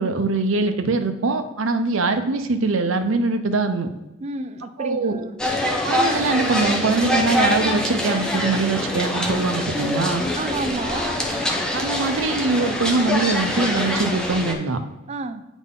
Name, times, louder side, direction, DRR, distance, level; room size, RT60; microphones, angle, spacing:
voice 1, 0.0-3.9 4.8-5.2 5.8-10.2 11.7-14.8, right 3 dB, 80° right, 0.6 m, -22 dB
voice 2, 4.2-5.3 10.3-11.2 15.1-15.5, right 3 dB, 35° right, 0.4 m, -30 dB
sound 1, 5.4-14.5, left 1 dB, 5° left, 0.8 m, -24 dB
8.9 x 4.1 x 3.7 m
head